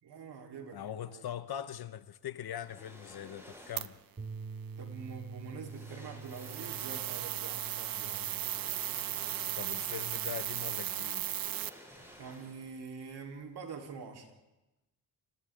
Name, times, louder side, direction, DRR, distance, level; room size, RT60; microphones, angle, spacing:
voice 1, 0.0-1.2 4.8-8.6 12.2-14.3, right 5 dB, 75° right, 3.9 m, -46 dB
voice 2, 0.7-4.0 9.6-11.2, left 10 dB, 70° left, 1.0 m, -41 dB
sound 1, 2.5-4.1 5.1-5.2 5.6-7.2 8.3-10.0 10.3-10.5 11.3-12.9 13.1-13.3, equal, 5° right, 7.8 m, -54 dB
sound 2, 3.8-3.9 6.3-11.7, right 12 dB, 60° right, 0.7 m, -36 dB
Bass guitar, 4.2-10.4, right 5 dB, 30° right, 2.4 m, -47 dB
29.5 x 28.0 x 3.8 m
cardioid pair, 110°, 39 cm